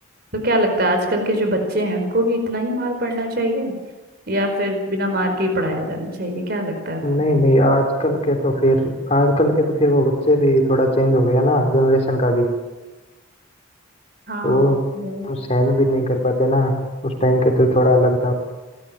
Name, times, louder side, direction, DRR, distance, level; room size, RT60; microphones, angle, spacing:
voice 1, 0.4-3.7 4.3-7.0 14.3-15.3, equal, 50° right, 5 dB, 4.8 m, -23 dB
voice 2, 7.0-12.5 14.4-14.8 15.2-16.7 17.0-18.3, equal, 30° left, 3 dB, 3.6 m, -18 dB
27.5 x 13.5 x 9.0 m, 1.2 s
head